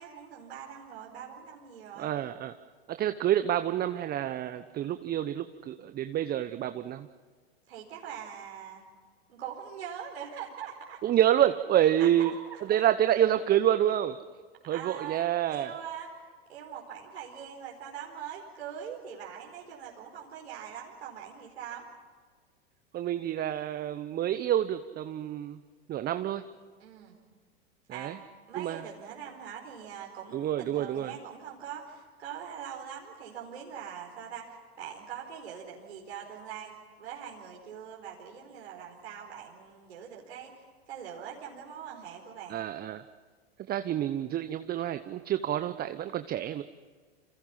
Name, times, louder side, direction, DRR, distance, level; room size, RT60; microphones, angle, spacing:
voice 1, 0.0-2.1 7.7-8.8 9.3-11.0 12.0-12.6 14.7-15.2 15.5-16.2 16.5-21.8 26.8-27.1 27.9-28.2 28.5-42.6, right 8 dB, 75° right, -2 dB, 4.8 m, -42 dB
voice 2, 2.0-2.5 2.9-7.1 11.0-12.3 12.7-14.2 14.7-15.7 22.9-25.6 25.9-26.4 27.9-28.2 28.5-28.8 30.3-31.1 42.5-43.0 43.7-46.6, right 11 dB, 30° right, 10 dB, 1.1 m, -28 dB
29.0 x 26.5 x 5.8 m, 1.5 s
hypercardioid pair, 100°, 32 cm